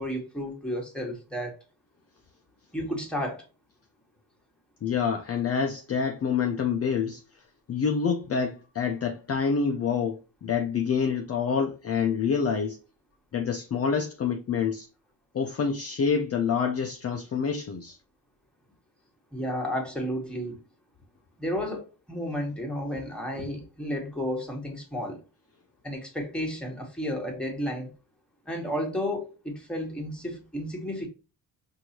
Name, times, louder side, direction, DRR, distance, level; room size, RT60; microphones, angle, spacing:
voice 1, 0.0-1.6 2.7-3.4 19.3-20.6 21.4-25.2 25.8-27.9 28.4-31.1, equal, ahead, 1.2 m, -32 dB
voice 2, 4.8-12.8 13.3-14.9 15.3-18.0, left 6 dB, 35° left, 0.5 m, -27 dB
4.5 x 2.7 x 2.8 m
cardioid pair, 115°, 41 cm